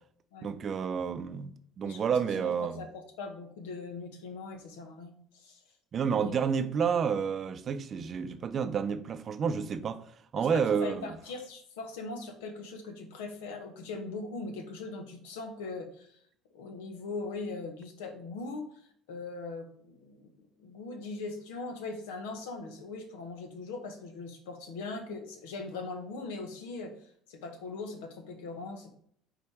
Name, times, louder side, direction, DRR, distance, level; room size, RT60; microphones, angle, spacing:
voice 1, 0.4-2.9 5.9-10.0 10.3-11.1, right 6 dB, 45° right, 0.6 m, -30 dB
voice 2, 1.8-5.6 6.0-6.4 10.4-16.2 16.5-18.7 19.1-28.9, left 3 dB, 80° left, 1.1 m, -40 dB
5.1 x 4.1 x 4.6 m
hypercardioid pair, 65°, 0 cm